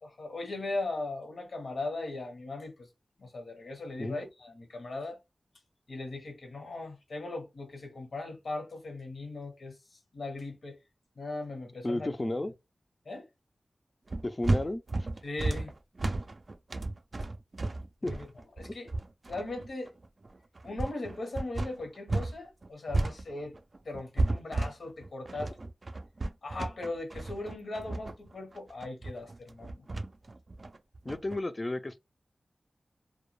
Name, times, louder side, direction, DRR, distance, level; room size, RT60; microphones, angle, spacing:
voice 1, 0.0-2.9 3.2-5.2 5.9-9.7 10.1-10.8 11.2-12.1 13.1-13.2 15.2-15.7 18.0-18.3 18.6-18.9 19.3-19.9 20.6-23.5 23.8-25.5 26.4-29.9, left 2 dB, 80° left, 0.8 m, -38 dB
voice 2, 11.8-12.5 14.2-15.1 18.0-18.1 18.7-18.8 31.0-32.0, left 1 dB, 30° left, 0.3 m, -33 dB
sound 1, 14.1-22.4 22.6-31.4, right 2 dB, 50° right, 0.3 m, -33 dB
2.2 x 2.1 x 2.9 m
wide cardioid pair, 60°, 0 cm